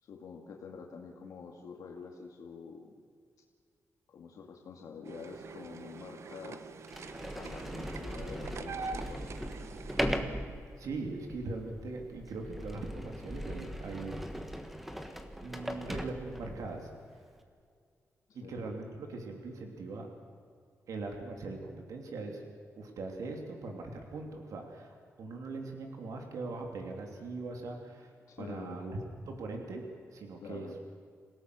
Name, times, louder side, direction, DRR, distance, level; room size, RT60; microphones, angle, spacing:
voice 1, 0.0-3.0 4.1-6.7 7.3-9.4 18.4-18.6 28.3-28.8 30.4-30.8, left 5 dB, 90° left, 1 dB, 2.2 m, -47 dB
sound 1, 5.0-10.0, right 5 dB, 55° right, 0.9 m, -44 dB
Sliding door, 5.5-5.6 6.3-6.4 6.8-16.8, equal, 5° right, 1.4 m, -39 dB
voice 2, 10.8-14.3 15.4-16.9 18.3-20.1 20.9-22.4 22.7-29.0 29.3-29.8 30.1-30.7, right 3 dB, 80° right, 2 dB, 3.1 m, -41 dB
27.5 x 17.5 x 6.3 m, 2.2 s
wide cardioid pair, 170°, 6 cm